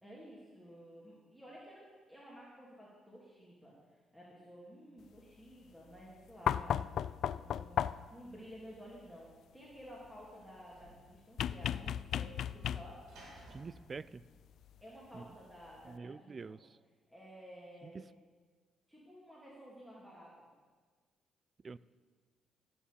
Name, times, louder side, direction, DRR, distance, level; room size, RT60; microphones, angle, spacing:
voice 1, 0.0-13.0 14.8-16.6 17.1-18.1 18.9-20.5, equal, 5° right, -6 dB, 3.0 m, -53 dB
sound 1, 6.5-8.2 11.4-13.1 14.7-14.8, left 9 dB, 70° left, 0.3 m, -35 dB
Sliding door / Slam, 9.4-15.2, right 1 dB, 80° right, 4.9 m, -61 dB
voice 2, 13.5-14.2 15.1-15.2 15.9-16.6 17.8-18.0 21.6-21.8, right 4 dB, 35° right, 19 dB, 0.4 m, -46 dB
15.5 x 7.2 x 6.8 m, 1.4 s
cardioid pair, 90°, 0 cm